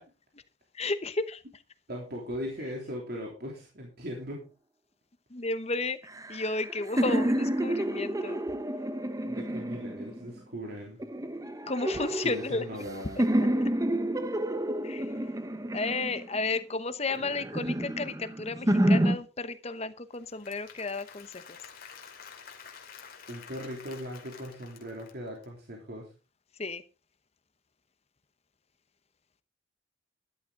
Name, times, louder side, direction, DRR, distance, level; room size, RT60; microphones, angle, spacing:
voice 1, 0.7-1.4 5.3-6.0 6.3-8.4 11.7-12.8 14.8-15.1 15.7-21.6 26.6-26.8, left 3 dB, 30° left, 12 dB, 1.0 m, -33 dB
voice 2, 1.9-4.5 9.3-11.0 12.2-13.2 23.3-26.1, equal, 50° right, 0 dB, 3.2 m, -39 dB
sound 1, 6.1-10.4 11.0-12.9 13.2-16.5 17.1-19.2, right 1 dB, 15° right, 0.8 m, -29 dB
Applause / Crowd, 20.1-25.4, left 6 dB, 45° left, 2.6 m, -49 dB
13.0 x 11.5 x 3.8 m, 0.31 s
head